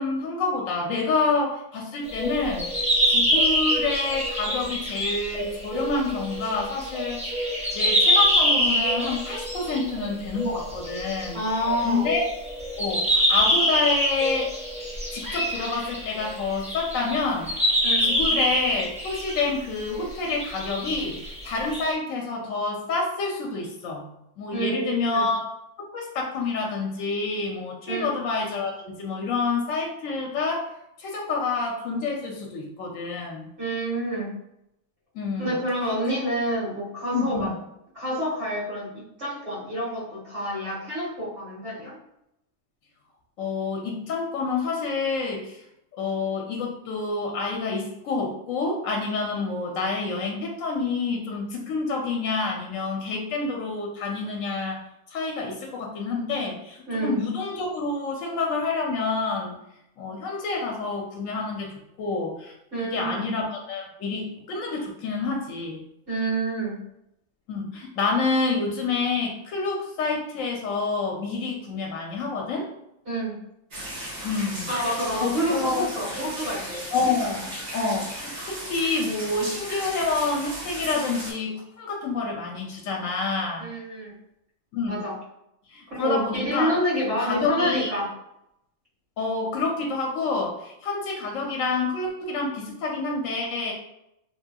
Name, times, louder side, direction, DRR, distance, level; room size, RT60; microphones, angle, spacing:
voice 1, 0.0-7.2 7.7-11.4 11.8-12.3 12.8-14.5 15.1-17.6 18.0-24.1 24.4-25.5 25.9-30.7 31.0-33.5 35.1-35.5 37.1-37.5 43.4-45.6 45.9-54.8 55.1-59.5 60.0-61.7 62.0-62.5 62.8-65.8 67.5-72.7 74.2-74.7 75.2-75.9 76.9-83.7 84.7-85.0 85.7-86.8 87.2-87.9 89.2-93.7, left 4 dB, 75° left, 0 dB, 0.9 m, -28 dB
sound 1, 2.1-17.2 17.5-19.4 19.9-21.9, equal, 10° right, 0.4 m, -25 dB
voice 2, 11.3-12.1 17.8-18.1 24.5-25.3 27.9-28.1 33.6-34.3 35.4-37.5 37.9-38.9 39.2-41.9 56.9-57.1 62.7-63.3 66.1-66.8 73.1-73.3 74.7-76.8 83.6-84.1 84.9-85.1 85.9-88.0, right 1 dB, 55° right, -8 dB, 1.9 m, -28 dB
sound 2, 73.7-81.3, equal, 70° right, 1.8 m, -36 dB
3.2 x 2.7 x 2.2 m, 0.82 s
omnidirectional pair, 1.4 m